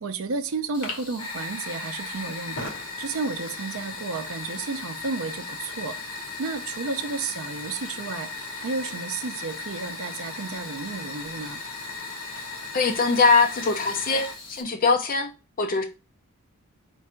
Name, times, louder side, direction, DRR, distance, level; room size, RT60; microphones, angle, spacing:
voice 1, 0.0-11.6, right 4 dB, 65° right, 0.5 m, -32 dB
Fire, 0.7-14.6, left 3 dB, 70° left, 1.0 m, -36 dB
voice 2, 12.7-15.3 15.6-15.8, left 4 dB, 40° left, 0.5 m, -22 dB
4.5 x 2.5 x 4.3 m
head